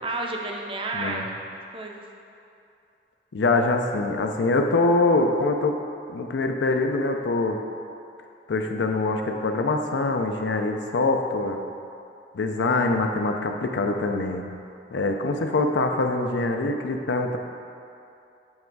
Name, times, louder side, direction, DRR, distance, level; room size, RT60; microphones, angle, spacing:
voice 1, 0.0-2.0, right 2 dB, 30° right, 1 dB, 0.5 m, -31 dB
voice 2, 0.9-1.2 3.3-5.8 6.1-7.6 8.5-11.6 12.3-14.4 14.9-17.4, left 2 dB, 90° left, 4 dB, 0.5 m, -24 dB
7.5 x 3.4 x 4.6 m, 2.7 s
head